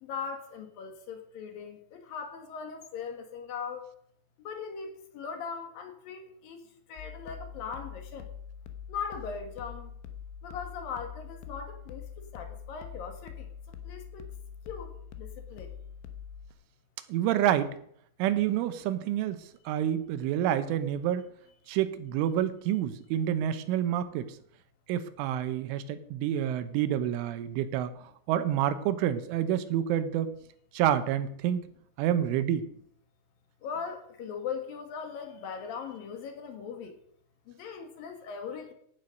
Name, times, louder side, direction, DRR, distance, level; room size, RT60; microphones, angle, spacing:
voice 1, 0.0-3.8 4.4-6.6 6.9-8.3 8.9-9.9 10.4-13.5 13.8-14.2 14.7-14.9 15.2-15.7 33.6-36.9 37.6-38.7, left 6 dB, 60° left, 5 dB, 2.8 m, -39 dB
sound 1, 7.0-16.5, left 8 dB, 75° left, 3.3 m, -44 dB
voice 2, 17.1-17.7 18.2-21.3 21.7-24.4 24.9-28.0 28.3-30.3 30.7-31.7 32.0-32.6, right 11 dB, 80° right, 11 dB, 3.4 m, -28 dB
16.0 x 10.5 x 5.2 m, 0.67 s
omnidirectional pair, 5.7 m